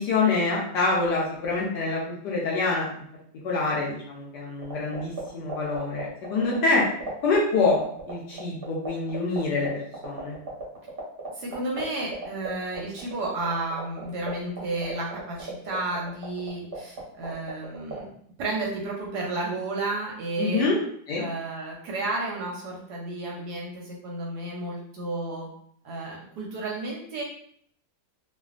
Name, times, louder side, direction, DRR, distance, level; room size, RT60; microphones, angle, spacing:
voice 1, 0.0-2.9 3.4-6.8 7.2-7.8 8.1-9.7 10.0-10.4 20.4-20.8 21.1-21.3, left 3 dB, 70° left, -4 dB, 1.1 m, -25 dB
sound 1, 4.6-18.0, right 3 dB, 55° right, 0.6 m, -35 dB
voice 2, 11.4-18.1 18.4-20.7 21.2-25.5 25.8-27.2, right 2 dB, 70° right, -2 dB, 1.0 m, -32 dB
3.2 x 2.1 x 2.4 m, 0.63 s
omnidirectional pair, 2.1 m